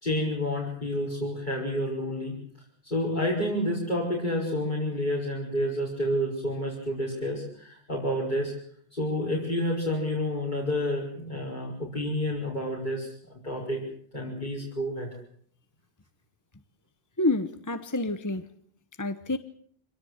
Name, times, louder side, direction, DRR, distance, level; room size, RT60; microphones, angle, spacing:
voice 1, 0.0-2.3 2.8-8.5 8.9-13.8 14.1-15.1, left 1 dB, 45° left, -3 dB, 5.7 m, -29 dB
voice 2, 17.2-18.5 19.0-19.4, left 2 dB, 20° left, 10 dB, 1.0 m, -28 dB
26.0 x 18.5 x 8.1 m, 0.63 s
omnidirectional pair, 1.1 m